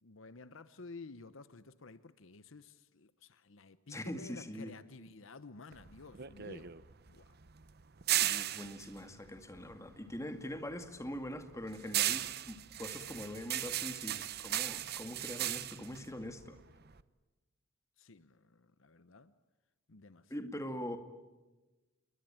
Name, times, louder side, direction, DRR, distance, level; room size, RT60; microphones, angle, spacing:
voice 1, 0.0-6.7 7.1-7.3 18.0-19.3 19.9-20.3, left 3 dB, 65° left, 0.9 m, -52 dB
voice 2, 3.9-4.8 8.1-16.6 20.3-21.0, left 1 dB, 15° left, 2.2 m, -43 dB
sound 1, 5.7-10.2 10.6-17.0, right 13 dB, 50° right, 0.9 m, -36 dB
28.0 x 22.0 x 9.0 m
head